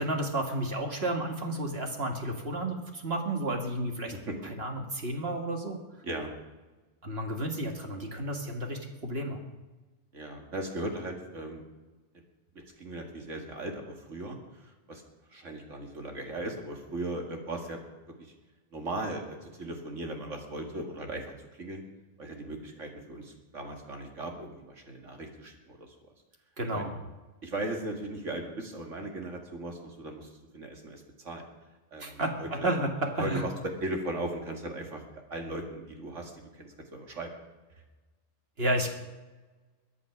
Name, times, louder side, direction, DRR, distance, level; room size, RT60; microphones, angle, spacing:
voice 1, 0.0-4.1 4.4-5.8 7.0-9.4 26.6-26.9 32.0-33.4 38.6-38.9, right 1 dB, 50° right, 3 dB, 2.0 m, -31 dB
voice 2, 10.1-11.6 12.8-14.4 14.9-15.0 15.3-17.8 18.7-21.2 21.6-21.8 22.2-25.9 26.7-26.9 27.4-30.3 30.5-31.4 31.9-32.7 33.2-33.5 33.8-35.0 35.3-36.3 36.6-37.3, right 1 dB, 65° right, 2 dB, 2.5 m, -37 dB
22.5 x 8.3 x 6.1 m, 1.2 s
omnidirectional pair, 1.3 m